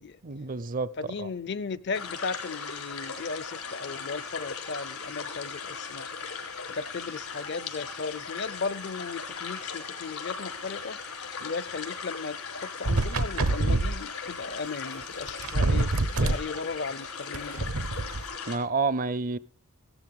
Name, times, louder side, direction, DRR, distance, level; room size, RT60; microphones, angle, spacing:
voice 1, 0.2-0.9 1.2-1.3 16.2-16.3 18.5-19.4, right 4 dB, 40° right, 0.5 m, -29 dB
voice 2, 1.0-6.2 6.7-11.0 11.4-17.9, left 4 dB, 50° left, 0.5 m, -36 dB
sound 1, 1.9-18.6, left 5 dB, 85° left, 4.1 m, -38 dB
sound 2, 12.8-14.0 15.0-15.1 15.3-16.4 17.3-18.2, right 2 dB, 75° right, 0.9 m, -25 dB
16.0 x 13.5 x 3.6 m
head